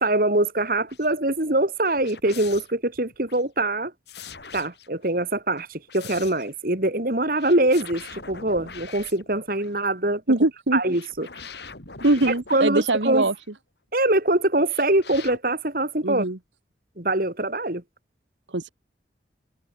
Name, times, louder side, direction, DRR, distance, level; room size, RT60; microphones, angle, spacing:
voice 1, 0.0-3.9 4.5-10.2 10.7-11.3 12.5-13.3 13.9-16.2 17.0-17.8, right 1 dB, 50° right, 3.0 m, -23 dB
sound 1, 0.8-1.1 1.9-3.4 4.1-5.1 5.6-6.5 7.4-9.8 10.9-13.5 14.7-15.4, left 5 dB, 65° left, 5.0 m, -43 dB
voice 2, 10.3-10.8 12.0-13.3 16.0-16.4 18.5-18.7, right 2 dB, 90° right, 1.8 m, -22 dB
open air
head